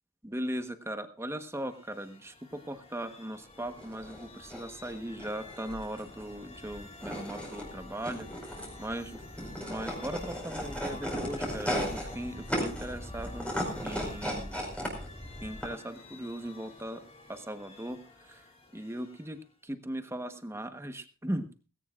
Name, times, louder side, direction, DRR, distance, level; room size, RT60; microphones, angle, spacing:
voice 1, 0.2-8.3 8.8-13.5 13.8-14.6 15.4-21.5, right 1 dB, 10° right, 8 dB, 1.1 m, -39 dB
sound 1, 1.4-19.6, left 3 dB, 30° left, 3.4 m, -51 dB
sound 2, 3.7-15.6, equal, 5° left, 4.8 m, -36 dB
19.0 x 17.0 x 2.5 m, 0.33 s
head